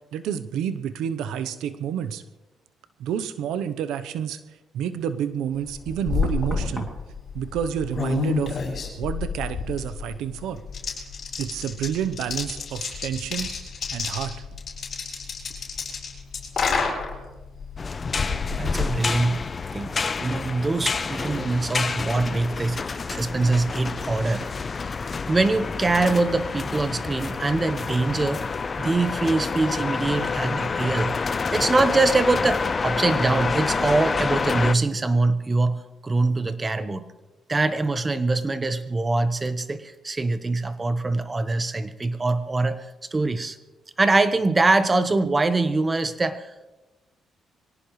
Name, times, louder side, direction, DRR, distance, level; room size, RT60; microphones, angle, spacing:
voice 1, 0.1-2.2 3.0-4.4 4.7-6.9 7.3-8.6 9.0-10.6 11.4-13.5 13.9-14.3, right 9 dB, 85° right, 11 dB, 0.8 m, -29 dB
sound 1, 5.6-19.7, left 4 dB, 50° left, 6.8 m, -30 dB
Knock, 6.2-9.7 10.0-10.4, left 2 dB, 15° left, 2.6 m, -42 dB
sound 2, 17.8-34.8, left 4 dB, 35° left, 0.6 m, -28 dB
voice 2, 18.6-19.4 19.7-19.9 20.2-24.5 25.3-28.5 28.8-31.1 31.5-37.0 37.5-42.8 43.1-43.6 44.0-46.5, right 3 dB, 25° right, 11 dB, 1.1 m, -23 dB
24.0 x 17.5 x 3.2 m, 1.1 s
cardioid pair, 90°, 0 cm